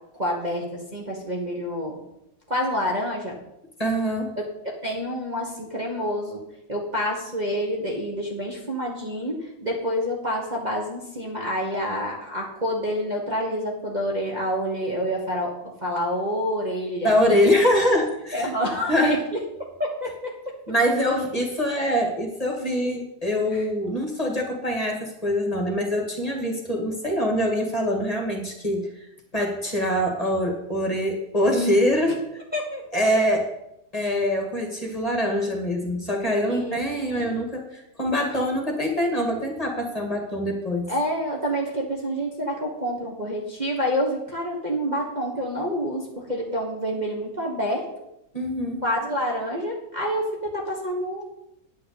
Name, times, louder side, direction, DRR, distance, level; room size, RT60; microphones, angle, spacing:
voice 1, 0.1-2.0 2.5-3.4 4.4-4.5 4.8-6.4 6.7-15.5 15.8-17.5 18.3-19.4 19.8-20.3 23.5-23.6 32.5-33.0 36.5-36.8 37.1-37.4 40.9-47.8 48.8-51.2, equal, 25° right, -3 dB, 1.5 m, -28 dB
voice 2, 3.8-4.4 17.0-18.5 18.9-19.2 20.7-29.1 29.3-32.2 32.9-33.5 33.9-40.9 48.3-48.8, equal, 25° left, 1 dB, 2.0 m, -24 dB
9.7 x 5.8 x 8.3 m, 0.84 s
omnidirectional pair, 1.7 m